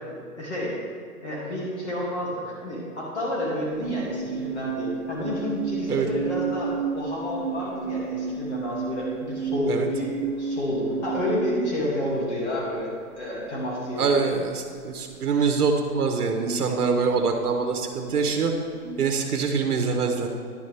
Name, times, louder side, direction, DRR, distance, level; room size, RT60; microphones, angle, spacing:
voice 1, 0.1-0.7 1.2-14.2, left 1 dB, 45° left, -5 dB, 2.5 m, -30 dB
sound 1, 3.6-12.3 15.5-15.6 16.2-17.8 18.1-19.0, right 5 dB, 25° right, 1.0 m, -32 dB
voice 2, 14.0-18.5 19.0-20.3, right 5 dB, 75° right, 4 dB, 1.3 m, -24 dB
10.5 x 9.8 x 3.4 m, 2.2 s
hypercardioid pair, 170°, 46 cm